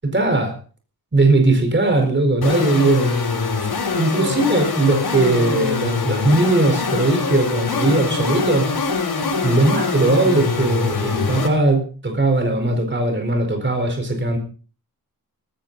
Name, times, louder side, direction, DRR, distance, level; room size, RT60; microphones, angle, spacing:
voice 1, 0.1-0.6 1.1-3.2 4.0-8.7 9.4-14.4, right 2 dB, 30° right, 5 dB, 4.6 m, -19 dB
sound 1, 2.4-11.5, left 4 dB, 80° left, 5.8 m, -23 dB
18.5 x 15.5 x 4.1 m, 0.38 s
wide cardioid pair, 150°, 37 cm